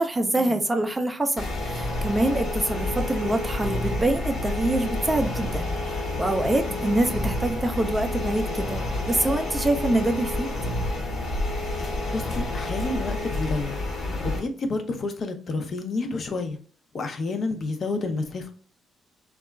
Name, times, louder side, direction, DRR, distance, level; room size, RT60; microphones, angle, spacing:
voice 1, 0.0-10.5, right 2 dB, 20° right, 6 dB, 0.4 m, -25 dB
sound 1, 1.4-14.4, left 2 dB, 65° left, 0.9 m, -29 dB
voice 2, 11.8-13.8 14.3-16.6 16.9-18.5, left 3 dB, 50° left, 6 dB, 0.5 m, -30 dB
2.8 x 2.2 x 2.2 m, 0.41 s
cardioid pair, 90°, 0 cm